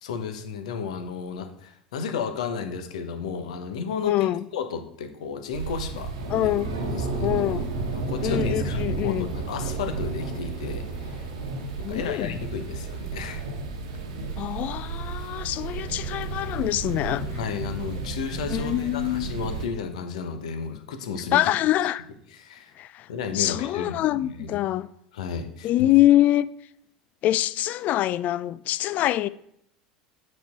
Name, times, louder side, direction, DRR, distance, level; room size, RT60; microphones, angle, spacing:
voice 1, 0.0-4.3 4.5-6.1 6.4-6.5 7.0-7.3 7.9-11.3 11.8-13.4 17.4-21.4 22.4-22.7 23.1-24.6 25.1-25.7, left 6 dB, 70° left, 1.0 m, -33 dB
voice 2, 4.1-4.5 6.3-6.8 7.2-7.7 8.2-9.3 11.8-12.4 14.4-17.3 18.5-19.3 21.3-22.1 22.8-23.1 23.3-24.9 25.6-26.5 27.2-29.3, left 14 dB, 45° left, 0.4 m, -24 dB
sound 1, 5.5-19.7, right 3 dB, 70° right, 1.3 m, -32 dB
8.3 x 4.4 x 4.4 m
figure-of-eight pair, 75°, 4 cm